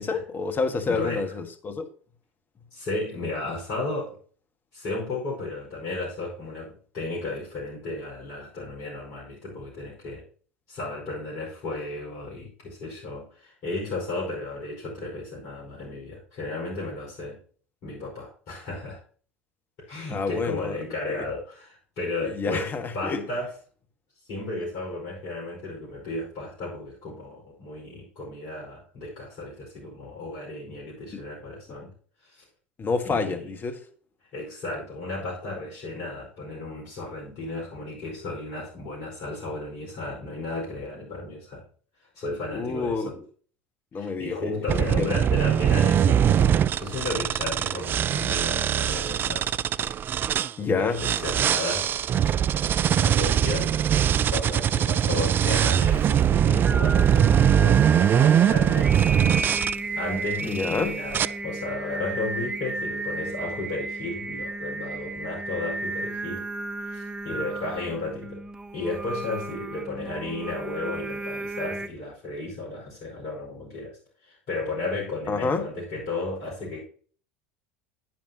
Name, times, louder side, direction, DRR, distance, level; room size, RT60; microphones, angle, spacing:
voice 1, 0.0-1.9 20.1-20.8 22.2-23.2 31.1-31.2 32.8-33.8 42.5-43.2 43.9-44.5 45.0-45.1 50.6-51.0 60.4-60.9 75.3-75.7, left 4 dB, 30° left, 1.6 m, -28 dB
voice 2, 0.8-1.3 2.7-4.2 4.7-10.2 10.7-17.4 17.8-19.0 19.9-23.5 24.3-31.9 32.2-32.4 33.0-33.5 34.3-41.6 42.2-43.2 44.0-49.5 50.8-51.9 52.2-57.9 58.1-59.0 60.0-66.5 66.9-68.5 68.7-76.8, left 2 dB, 55° left, 5.1 m, -34 dB
sound 1, 44.7-50.5 51.0-59.7 60.4-60.7 61.1-61.3, right 9 dB, 30° right, 0.3 m, -22 dB
Singing, 55.9-71.9, right 2 dB, 15° right, 0.8 m, -33 dB
10.5 x 9.4 x 2.9 m
figure-of-eight pair, 75°, 6 cm